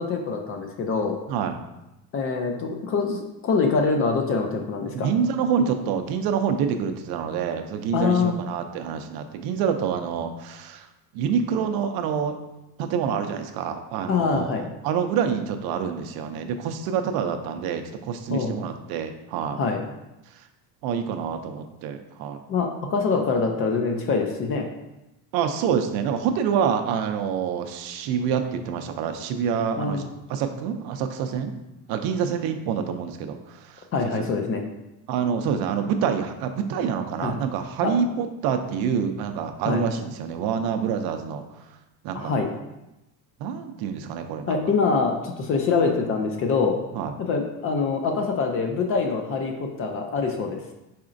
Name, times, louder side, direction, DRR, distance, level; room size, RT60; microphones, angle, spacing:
voice 1, 0.0-1.2 2.1-5.1 7.9-8.4 14.1-14.7 18.3-18.5 19.5-19.8 22.5-24.7 29.8-30.1 33.9-34.6 37.2-37.3 37.8-37.9 39.7-39.8 42.1-42.5 44.5-46.8 47.2-50.6, left 4 dB, 35° left, 4 dB, 0.4 m, -24 dB
voice 2, 4.9-10.9 11.1-12.4 12.8-19.6 20.4-20.5 20.8-22.4 25.3-31.5 31.9-33.8 34.2-34.3 35.1-41.4 42.0-42.3 43.4-44.6 46.9-47.1, right 7 dB, 65° right, 7 dB, 0.5 m, -27 dB
4.7 x 4.2 x 2.5 m, 0.93 s
cardioid pair, 155°, 40 cm